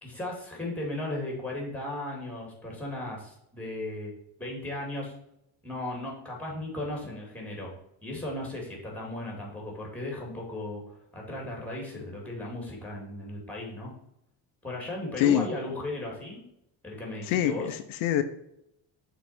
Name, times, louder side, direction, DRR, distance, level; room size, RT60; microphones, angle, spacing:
voice 1, 0.0-4.1 4.4-5.1 5.6-7.7 8.0-13.9 14.6-16.4 16.8-17.7, left 1 dB, 5° left, -2 dB, 2.1 m, -36 dB
voice 2, 17.2-18.2, left 11 dB, 85° left, 8 dB, 0.7 m, -25 dB
6.2 x 3.9 x 4.2 m, 0.79 s
cardioid pair, 145°, 46 cm